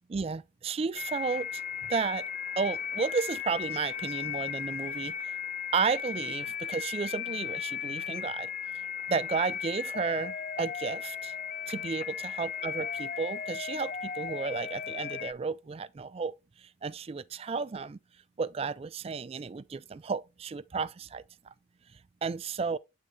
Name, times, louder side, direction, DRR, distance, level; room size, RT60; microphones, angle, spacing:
voice 1, 0.1-2.3 2.6-5.4 5.7-8.5 9.1-11.3 11.7-18.0 18.4-21.5 22.2-22.8, right 5 dB, 30° right, 0.3 m, -33 dB
sound 1, 1.0-15.3, left 8 dB, 45° left, 0.5 m, -36 dB
8.7 x 3.7 x 3.3 m
head